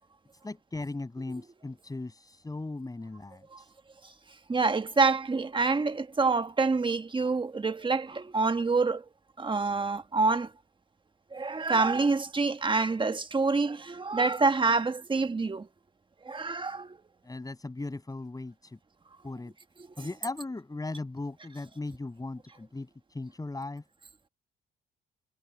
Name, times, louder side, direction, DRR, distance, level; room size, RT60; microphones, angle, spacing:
voice 1, 0.4-3.7 17.2-18.8 19.2-19.5 20.0-23.8, left 2 dB, 20° left, 6.8 m, -38 dB
voice 2, 4.5-9.0 9.4-10.5 11.3-15.7 16.2-17.0 20.0-20.1, right 4 dB, 25° right, 1.4 m, -27 dB
cardioid pair, 90°, 20 cm